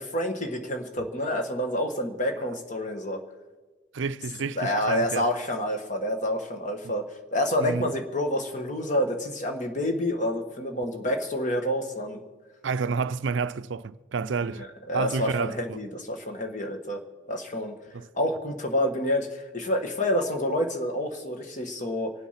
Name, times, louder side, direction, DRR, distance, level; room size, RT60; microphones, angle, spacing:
voice 1, 0.0-3.2 4.6-7.0 7.3-12.2 14.4-17.0 17.3-17.8 18.1-22.1, left 1 dB, 40° left, 1.5 m, -28 dB
voice 2, 3.9-5.3 7.6-7.9 12.6-14.7 14.9-15.8 17.9-18.1, right 5 dB, 65° right, 0.5 m, -29 dB
24.5 x 8.2 x 5.8 m
head